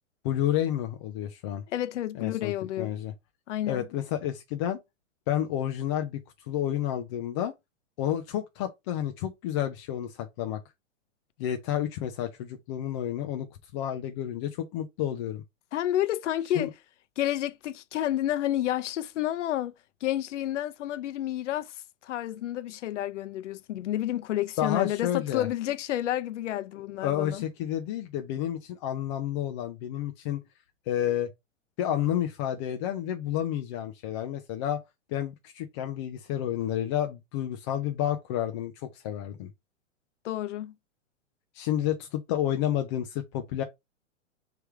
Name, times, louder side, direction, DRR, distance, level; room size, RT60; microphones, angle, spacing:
voice 1, 0.2-1.6 2.2-3.1 3.7-4.8 5.3-6.2 6.5-7.5 8.0-10.6 11.4-13.5 13.7-15.4 16.6-16.7 24.6-25.5 27.0-30.4 30.9-31.3 31.8-34.8 35.1-39.5 41.5-43.6, left 11 dB, 25° left, 0.4 m, -30 dB
voice 2, 1.7-2.9 3.5-3.8 15.7-16.7 17.2-19.7 20.0-27.4 40.2-40.7, left 13 dB, 65° left, 0.7 m, -30 dB
3.4 x 3.3 x 4.5 m
hypercardioid pair, 130°, 38 cm